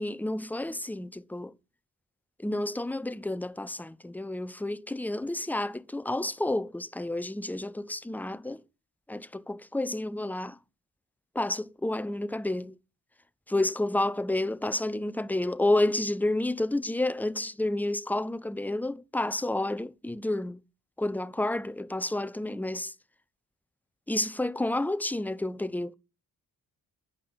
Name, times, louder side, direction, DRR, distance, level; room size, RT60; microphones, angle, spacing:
voice 1, 0.0-1.5 2.4-8.6 9.1-10.6 11.3-12.7 13.5-20.6 21.0-22.9 24.1-25.9, left 1 dB, 5° left, 0.7 m, -30 dB
9.5 x 5.4 x 3.9 m
hypercardioid pair, 45°, 39 cm